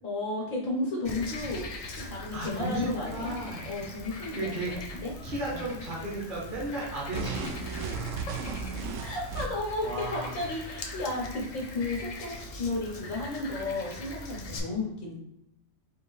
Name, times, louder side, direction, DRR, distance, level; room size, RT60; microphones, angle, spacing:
voice 1, 0.0-1.7 2.0-3.3 3.6-5.1 5.5-5.6 8.3-8.4 9.0-15.1, left 2 dB, 85° left, -2 dB, 1.6 m, -33 dB
Frog, 1.0-14.6, left 2 dB, 60° left, 0.3 m, -42 dB
voice 2, 2.3-3.6 4.3-4.7 5.2-8.1 9.8-10.4 14.5-14.6, right 1 dB, 45° right, -4 dB, 1.1 m, -35 dB
sound 1, 7.1-9.8, right 5 dB, 75° right, 0.9 m, -35 dB
4.8 x 2.7 x 3.1 m, 0.82 s
omnidirectional pair, 1.3 m